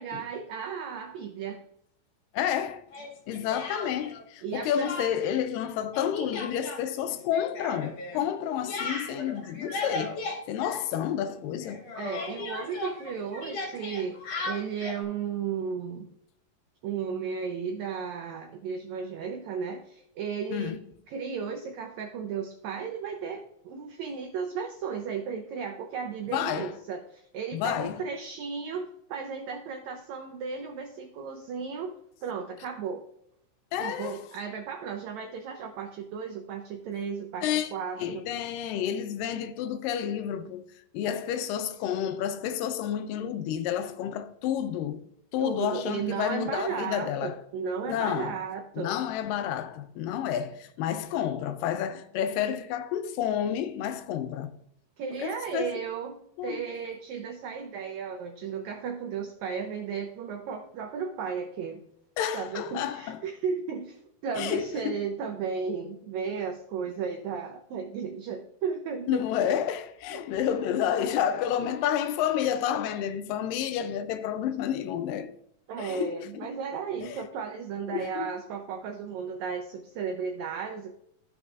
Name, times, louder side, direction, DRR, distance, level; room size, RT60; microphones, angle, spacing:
voice 1, 0.0-1.6 4.4-4.9 12.0-16.1 16.8-20.7 21.1-31.9 32.2-33.0 33.8-38.3 45.4-49.0 55.0-56.2 56.4-61.8 62.3-64.0 64.2-69.2 75.7-80.9, right 6 dB, 80° right, 1.7 m, -34 dB
voice 2, 2.3-2.8 3.3-11.9 20.5-20.8 26.3-26.7 27.5-28.0 33.7-34.2 37.4-37.7 38.0-40.6 40.9-45.1 45.3-47.4 47.9-48.4 48.8-54.6 55.2-55.8 56.4-56.6 62.2-63.2 64.3-65.0 69.1-75.3 75.8-76.5 77.0-77.3 77.9-78.4, left 9 dB, 90° left, 2.3 m, -30 dB
Speech, 2.9-4.2 4.5-5.4 5.6-11.3 11.6-15.0, left 3 dB, 60° left, 2.0 m, -37 dB
13.0 x 5.2 x 2.4 m
omnidirectional pair, 3.9 m